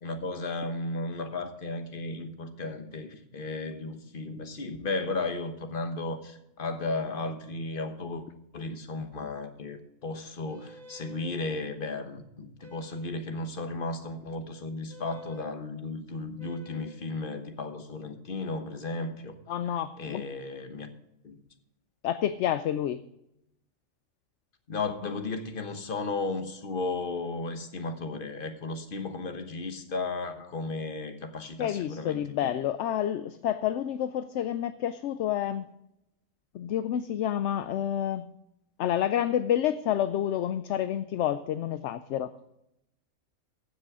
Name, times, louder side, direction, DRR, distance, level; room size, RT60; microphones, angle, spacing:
voice 1, 0.0-8.3 8.5-19.3 20.0-20.9 21.2-21.4 24.7-32.5, left 3 dB, 45° left, 7 dB, 1.3 m, -34 dB
sound 1, 10.4-11.4 12.6-13.2 14.9-15.5 16.4-17.0, left 2 dB, 80° right, 1.7 m, -48 dB
voice 2, 19.5-20.2 22.0-23.0 31.6-35.7 36.5-38.3 38.8-42.3, left 10 dB, 70° left, 12 dB, 0.8 m, -29 dB
15.5 x 6.4 x 4.8 m, 0.84 s
omnidirectional pair, 1.3 m